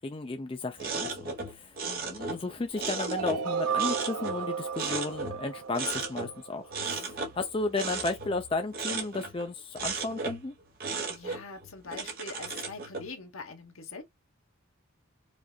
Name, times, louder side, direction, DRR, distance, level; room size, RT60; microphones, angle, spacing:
voice 1, 0.0-1.8 2.0-10.5, left 3 dB, 25° left, 0.4 m, -34 dB
sound 1, 0.8-3.5 3.8-5.5 5.7-6.3 6.7-9.5 9.8-10.5 10.8-13.1, right 4 dB, 45° right, 1.1 m, -35 dB
voice 2, 1.8-2.3 6.8-7.1 11.1-14.0, left 4 dB, 70° left, 1.1 m, -44 dB
sound 2, 3.1-7.0, right 7 dB, 85° right, 0.5 m, -34 dB
4.9 x 2.5 x 2.3 m
head